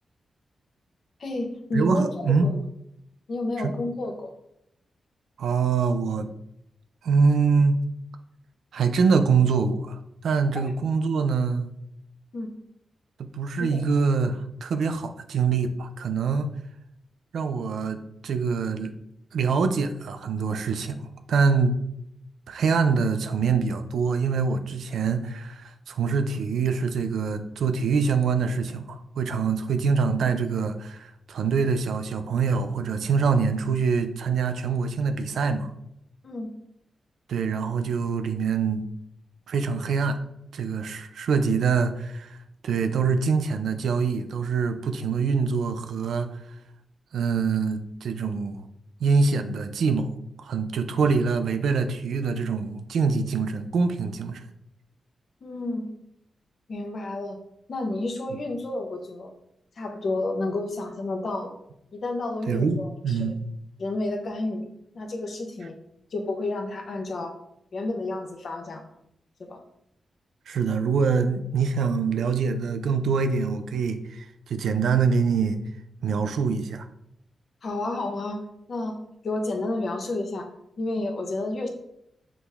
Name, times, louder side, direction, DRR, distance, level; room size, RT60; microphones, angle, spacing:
voice 1, 1.2-2.6 3.3-4.3 10.5-10.6 12.3-12.5 13.6-13.8 36.2-36.5 55.4-55.9 56.7-57.4 57.7-59.3 59.8-61.5 61.9-63.3 63.8-64.6 64.9-65.7 66.1-67.3 67.7-68.8 69.4-69.6 77.6-78.4 78.7-78.9 79.2-80.5 80.8-81.7, left 2 dB, 65° left, 3 dB, 0.8 m, -30 dB
voice 2, 1.7-2.5 3.6-3.7 5.4-6.3 7.0-7.8 8.7-11.7 13.2-16.5 17.3-18.9 19.3-21.0 21.3-21.7 22.5-35.7 37.3-38.8 39.5-40.2 40.5-42.4 42.6-46.3 47.1-48.6 49.0-50.1 50.4-54.4 62.5-62.8 63.0-63.4 70.5-75.6 76.0-76.9, right 5 dB, 85° right, 8 dB, 0.4 m, -24 dB
6.0 x 2.1 x 3.4 m, 0.79 s
cardioid pair, 65°, 0 cm